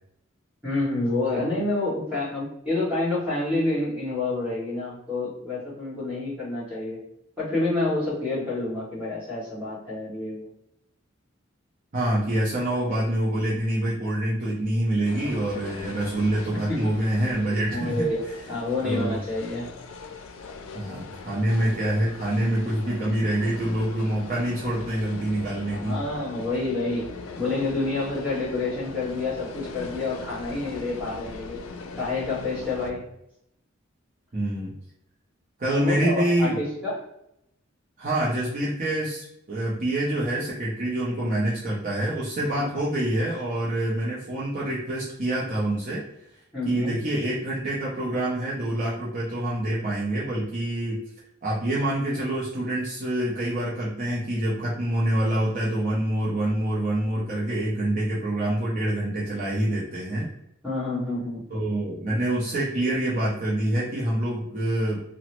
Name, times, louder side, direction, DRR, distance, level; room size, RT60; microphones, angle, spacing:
voice 1, 0.6-7.0 7.4-10.5 16.7-16.9 17.7-19.7 25.7-27.1 27.4-31.6 32.0-33.1 35.7-37.1 42.6-42.7 46.5-46.9 60.6-61.4, left 2 dB, 5° right, -9 dB, 1.4 m, -28 dB
voice 2, 11.9-18.1 18.8-19.2 20.7-26.0 34.3-34.7 35.6-36.6 38.0-46.0 46.7-51.0 51.4-60.3 61.5-65.0, right 1 dB, 40° right, -6 dB, 0.6 m, -26 dB
sound 1, 15.0-32.9, left 4 dB, 90° left, 0.4 m, -40 dB
2.9 x 2.1 x 2.9 m, 0.79 s
head